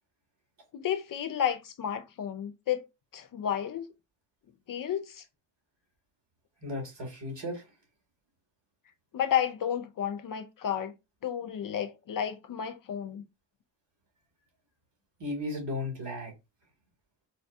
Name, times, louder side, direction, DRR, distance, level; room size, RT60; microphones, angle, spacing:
voice 1, 0.7-2.9 3.1-3.9 4.7-5.2 9.1-10.9 11.2-13.3, left 9 dB, 45° left, 0.6 m, -32 dB
voice 2, 6.6-7.6 15.2-16.3, left 1 dB, 65° right, 2.1 m, -35 dB
4.2 x 2.1 x 2.6 m
hypercardioid pair, 45°, 46 cm